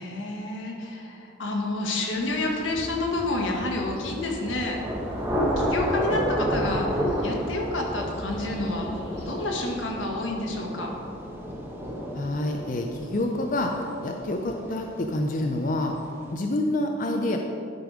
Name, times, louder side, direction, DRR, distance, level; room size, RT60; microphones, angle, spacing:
voice 1, 0.0-4.8 5.6-8.9 9.2-10.9, left 2 dB, 85° left, 0 dB, 1.6 m, -29 dB
sound 1, 2.1-9.9, left 1 dB, 65° left, 1.5 m, -49 dB
sound 2, 2.6-9.1, right 1 dB, 25° right, 0.5 m, -42 dB
Thunder / Rain, 3.7-15.3, equal, 10° right, 1.0 m, -31 dB
voice 2, 12.1-16.0 16.3-17.4, left 1 dB, 45° left, 2 dB, 0.5 m, -27 dB
11.5 x 5.3 x 4.8 m, 2.6 s
head